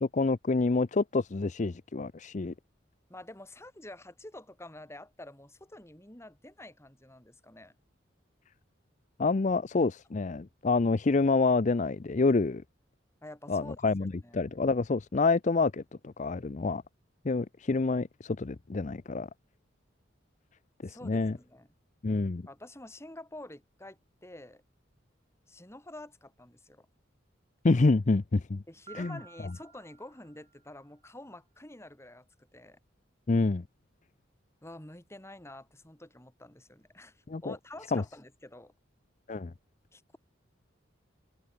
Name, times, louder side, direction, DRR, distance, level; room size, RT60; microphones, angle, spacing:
voice 1, 0.0-2.5 9.2-12.6 13.5-16.8 17.2-19.3 20.8-21.4 22.0-22.5 27.6-28.6 29.0-29.2 33.3-33.6 37.3-37.6 37.9-38.0 39.3-39.5, left 3 dB, 40° left, 0.5 m, -27 dB
voice 2, 3.1-7.7 13.2-14.5 20.9-21.7 22.5-24.6 25.5-26.9 28.7-32.3 32.5-32.8 34.6-38.7 39.9-40.2, left 1 dB, 15° left, 2.8 m, -48 dB
Piano, 28.9-30.8, right 5 dB, 30° right, 2.2 m, -53 dB
head